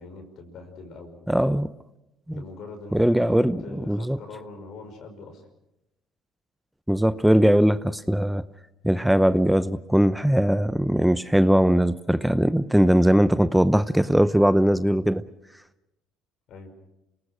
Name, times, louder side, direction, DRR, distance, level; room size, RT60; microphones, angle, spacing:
voice 1, 0.0-1.3 2.3-5.4 16.5-16.7, left 3 dB, 65° left, 6 dB, 5.4 m, -42 dB
voice 2, 1.3-1.7 2.3-2.4 2.9-4.2 6.9-8.4 8.8-15.2, equal, 5° right, 14 dB, 0.7 m, -20 dB
28.0 x 18.5 x 6.3 m, 0.92 s
supercardioid pair, 70°, 0 cm